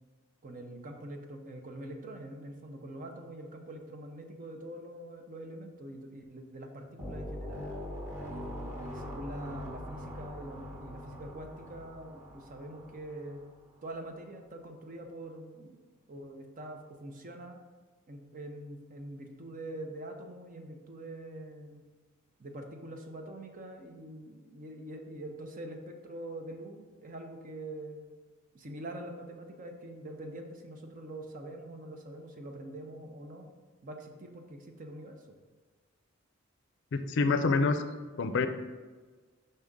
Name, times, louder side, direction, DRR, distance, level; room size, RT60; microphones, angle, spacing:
voice 1, 0.4-7.7 8.2-13.4 13.8-15.8 16.1-17.6 18.1-21.8 22.4-28.1 28.5-33.5 33.8-35.4, right 1 dB, 40° right, 4 dB, 0.7 m, -44 dB
sound 1, 7.0-13.5, left 1 dB, 10° right, 1.1 m, -42 dB
voice 2, 36.9-37.8 38.2-38.5, left 4 dB, 65° left, 9 dB, 0.4 m, -26 dB
5.5 x 3.6 x 5.2 m, 1.4 s
head